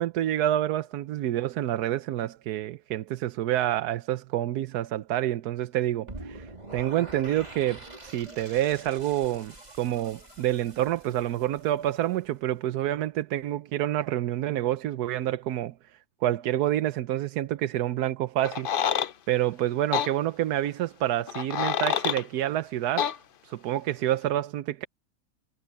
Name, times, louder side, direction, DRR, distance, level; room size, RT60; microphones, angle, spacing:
voice 1, 0.0-15.7 16.2-18.7 19.3-23.1 23.4-24.9, right 13 dB, 85° right, 1.2 m, -28 dB
sound 1, 6.1-12.1, right 2 dB, 25° right, 3.4 m, -45 dB
sound 2, 18.4-19.1 19.9-20.1 21.3-22.2 23.0-23.2, left 8 dB, 55° left, 0.6 m, -27 dB
omnidirectional pair, 1.6 m